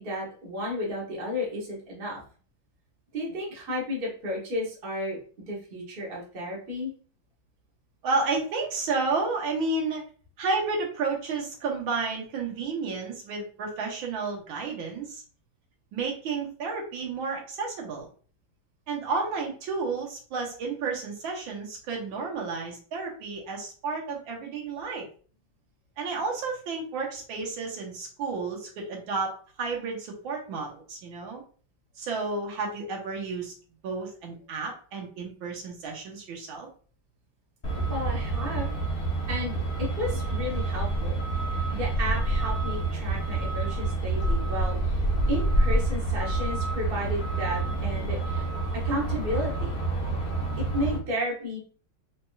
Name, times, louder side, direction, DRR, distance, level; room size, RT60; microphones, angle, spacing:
voice 1, 0.0-2.2 3.1-6.9 37.9-38.8 39.3-41.2 41.7-48.5 48.8-49.8 50.7-51.6, left 1 dB, 35° right, -4 dB, 1.1 m, -33 dB
voice 2, 8.0-10.0 10.4-15.2 15.9-18.1 18.9-25.1 26.0-29.3 29.6-31.4 32.0-33.5 33.8-36.7, right 4 dB, 80° right, -1 dB, 1.9 m, -31 dB
Truck, 37.6-51.0, right 2 dB, 45° left, 0.6 m, -28 dB
4.3 x 3.1 x 2.3 m, 0.41 s
omnidirectional pair, 2.2 m